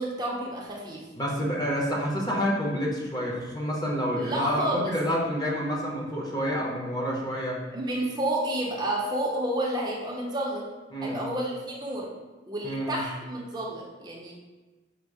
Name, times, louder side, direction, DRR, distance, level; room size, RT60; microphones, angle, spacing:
voice 1, 0.0-1.0 4.2-4.9 7.7-10.7 11.0-12.1 12.5-14.3, right 1 dB, 25° right, -3 dB, 0.6 m, -30 dB
voice 2, 1.1-7.6 10.9-11.2 12.6-13.0, equal, 25° left, -3 dB, 0.8 m, -28 dB
5.1 x 2.0 x 4.7 m, 1.2 s
head